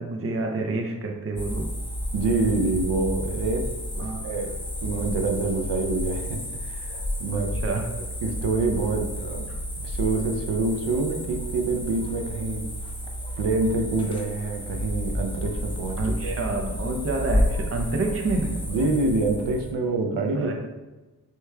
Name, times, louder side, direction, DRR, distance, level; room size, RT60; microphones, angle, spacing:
voice 1, 0.0-1.7 4.0-4.2 7.3-7.9 16.0-18.8 20.3-20.5, right 3 dB, 35° right, 2 dB, 0.7 m, -28 dB
sound 1, 1.4-19.7, equal, 10° left, 0.9 m, -31 dB
voice 2, 2.1-3.6 4.0-4.5 4.8-7.7 8.2-9.5 9.8-12.6 13.4-16.5 18.7-20.5, right 3 dB, 80° right, 3 dB, 0.7 m, -26 dB
6.5 x 3.0 x 2.3 m, 1.1 s
cardioid pair, 55°, 41 cm